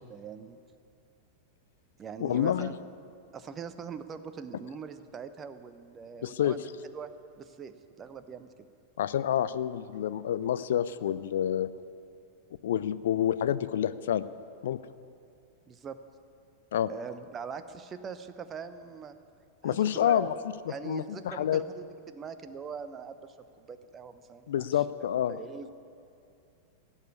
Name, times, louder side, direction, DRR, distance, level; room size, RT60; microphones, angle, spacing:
voice 1, 0.1-0.6 2.0-2.7 3.3-6.6 6.9-7.1 7.4-8.5 15.7-16.0 16.9-19.2 19.6-20.3 20.7-25.7, right 6 dB, 25° right, 10 dB, 0.8 m, -42 dB
voice 2, 2.2-2.7 6.2-6.6 9.0-11.7 12.6-14.3 14.6-14.8 16.7-16.9 19.6-20.3 20.8-21.6 24.5-25.4, left 10 dB, 60° left, 15 dB, 0.5 m, -28 dB
16.5 x 7.3 x 9.6 m, 2.5 s
figure-of-eight pair, 90°, 0 cm